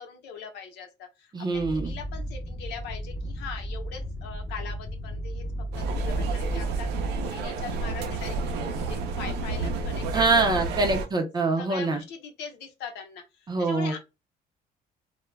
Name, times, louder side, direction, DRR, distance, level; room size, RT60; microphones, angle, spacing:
voice 1, 0.0-5.4 5.8-10.2 10.6-10.9 11.6-14.0, left 6 dB, 85° left, 0.8 m, -41 dB
voice 2, 1.3-1.9 10.1-12.0 13.5-14.0, right 3 dB, 25° right, 0.5 m, -24 dB
sound 1, 1.5-7.3, right 1 dB, 15° left, 0.7 m, -33 dB
sound 2, 5.7-11.1, right 3 dB, 85° right, 0.6 m, -30 dB
2.3 x 2.0 x 3.2 m
cardioid pair, 110°, 17 cm